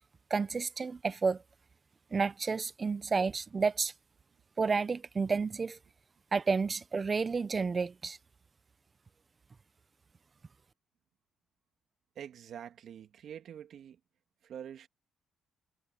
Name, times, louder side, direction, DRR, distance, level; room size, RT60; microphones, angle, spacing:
voice 1, 0.3-1.4 2.1-3.9 4.6-5.8 6.3-8.2, right 4 dB, 35° right, 1.0 m, -30 dB
voice 2, 12.1-14.0 14.4-14.9, right 9 dB, 65° right, 2.5 m, -46 dB
cardioid pair, 90°, 0 cm